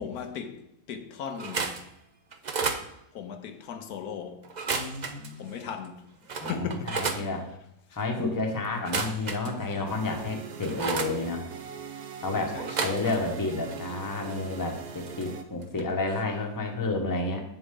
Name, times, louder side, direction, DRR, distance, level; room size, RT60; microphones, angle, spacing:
voice 1, 0.0-1.9 3.1-4.5 5.4-7.3 12.5-13.0, left 7 dB, 75° left, 1.2 m, -38 dB
sound 1, 1.3-1.8 2.3-2.8 4.4-5.3 5.8-5.9 6.3-7.2 8.7-9.8 10.2-11.1 12.6-13.4 13.7-15.3 15.6-15.8 16.1-16.2, right 5 dB, 50° right, 0.5 m, -33 dB
voice 2, 4.7-5.5 6.4-7.5 7.9-11.5 12.2-17.4, left 3 dB, 15° left, 0.9 m, -31 dB
sound 2, 9.9-15.4, right 7 dB, 70° right, 1.3 m, -41 dB
8.1 x 7.0 x 3.7 m
omnidirectional pair, 1.7 m